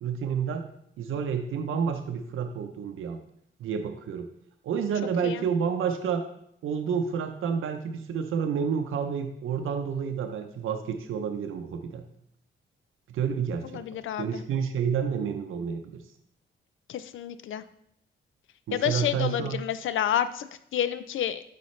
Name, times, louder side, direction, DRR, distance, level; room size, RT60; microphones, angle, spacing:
voice 1, 0.0-0.7 1.0-3.2 3.6-4.3 4.6-6.3 6.6-12.1 13.1-13.8 14.2-16.0 18.7-19.6, right 7 dB, 90° right, 5 dB, 0.6 m, -29 dB
voice 2, 13.7-14.3 16.9-17.6 18.7-21.4, left 10 dB, 75° left, 12 dB, 0.5 m, -29 dB
9.5 x 4.1 x 3.2 m, 0.74 s
cardioid pair, 120°, 20 cm